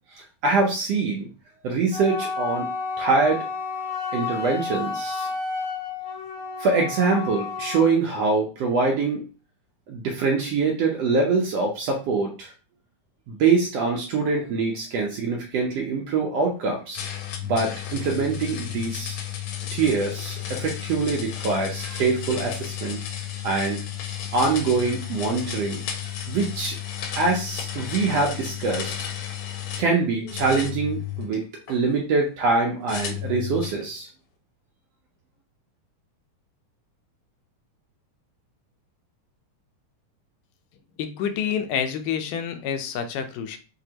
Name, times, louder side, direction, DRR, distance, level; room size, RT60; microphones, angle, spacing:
voice 1, 0.1-1.3 1.6-2.7 3.0-3.4 4.1-5.3 6.6-9.2 9.9-12.5 13.3-17.0 17.4-19.2 19.7-23.0 23.4-23.8 24.3-25.8 26.3-26.8 27.2-29.1 29.8-31.4 31.7-34.1, right 4 dB, 70° right, 0 dB, 1.6 m, -24 dB
Wind instrument woodwind instrument, 1.9-8.0, left 4 dB, 25° left, 0.4 m, -31 dB
sound 1, 16.9-29.9 30.3-31.8 32.9-33.8, left 10 dB, 75° left, 1.9 m, -33 dB
voice 2, 41.0-43.6, left 8 dB, 90° left, 7 dB, 2.3 m, -28 dB
6.1 x 2.9 x 2.9 m, 0.34 s
omnidirectional pair, 3.7 m